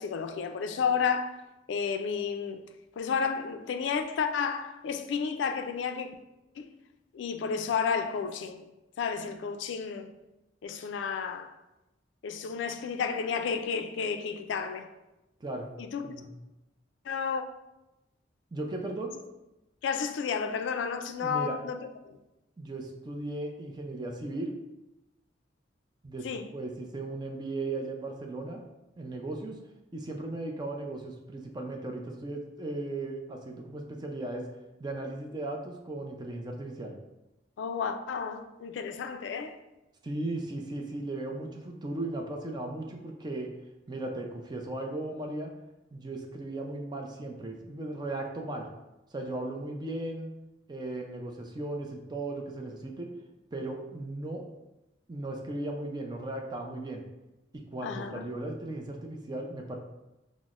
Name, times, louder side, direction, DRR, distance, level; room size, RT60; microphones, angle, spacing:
voice 1, 0.0-1.4 1.7-2.6 3.0-6.1 6.6-6.7 7.1-8.7 9.0-10.1 10.6-11.5 12.2-14.9 15.8-16.1 17.1-17.4 19.8-21.8 22.1-22.2 26.2-26.5 37.6-39.5 57.8-58.3, left 6 dB, 75° left, 0.3 m, -31 dB
voice 2, 18.5-19.1 21.2-21.6 22.6-24.6 26.0-28.6 29.0-29.6 29.9-34.5 34.8-36.9 40.0-43.5 43.9-45.5 45.9-48.7 49.1-50.3 50.7-53.1 53.5-54.5 55.1-57.0 57.7-59.8, right 2 dB, 20° right, 0.4 m, -36 dB
5.9 x 2.0 x 2.4 m
head